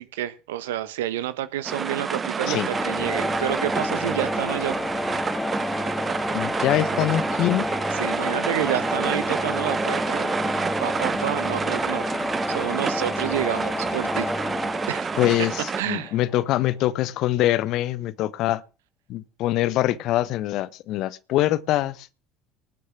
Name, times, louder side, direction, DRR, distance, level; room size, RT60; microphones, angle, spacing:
voice 1, 0.0-4.8 7.9-10.3 10.8-12.2 12.5-14.3 14.9-15.2 15.8-16.2, right 13 dB, 75° right, 1.1 m, -29 dB
sound 1, 1.6-15.8, right 5 dB, 30° right, 0.8 m, -29 dB
sound 2, 2.7-16.6, left 2 dB, 10° left, 1.2 m, -30 dB
voice 2, 6.3-7.7 15.2-18.6 19.1-22.1, left 14 dB, 60° left, 1.0 m, -24 dB
19.0 x 6.5 x 7.3 m
hypercardioid pair, 65°, 0 cm